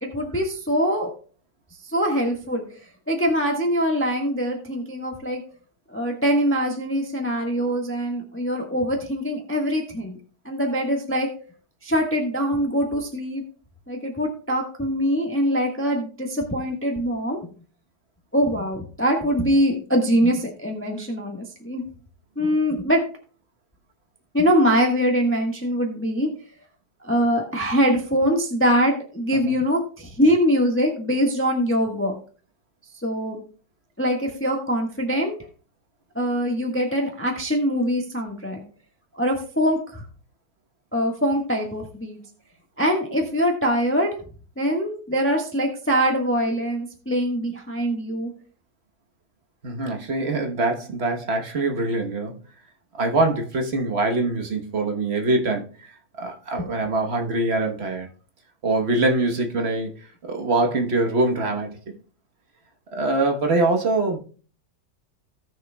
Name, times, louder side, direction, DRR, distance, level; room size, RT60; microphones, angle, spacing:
voice 1, 0.0-1.1 1.8-2.6 3.1-5.4 5.9-10.2 10.4-11.3 11.8-13.4 13.9-17.4 18.3-21.8 22.4-23.0 24.3-26.3 27.0-32.1 33.0-33.4 34.0-35.3 36.1-38.6 39.1-40.0 40.9-42.2 42.8-44.2 44.6-48.3 56.6-56.7, equal, 10° left, 1 dB, 1.2 m, -23 dB
voice 2, 49.6-52.4 52.9-55.7 56.2-58.1 58.6-60.0 60.2-62.0 62.9-64.2, right 2 dB, 40° right, 3 dB, 1.3 m, -23 dB
18.0 x 6.4 x 2.3 m, 0.41 s
omnidirectional pair, 2.0 m